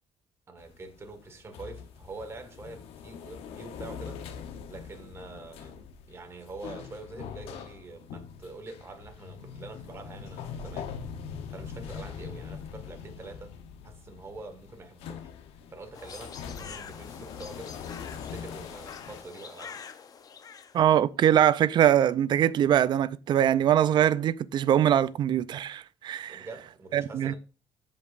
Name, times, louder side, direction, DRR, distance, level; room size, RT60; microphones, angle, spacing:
voice 1, 0.5-4.2 4.7-10.9 11.5-13.5 13.8-15.3 15.7-17.8 18.1-19.8 26.3-27.4, right 3 dB, 30° right, 1.6 m, -45 dB
sound 1, 0.6-19.2, left 7 dB, 90° left, 0.9 m, -42 dB
sound 2, 15.9-20.8, left 6 dB, 40° left, 0.7 m, -45 dB
voice 2, 20.7-26.5 26.9-27.4, right 10 dB, 50° right, 0.4 m, -23 dB
14.5 x 5.2 x 2.5 m
cardioid pair, 120°, 10 cm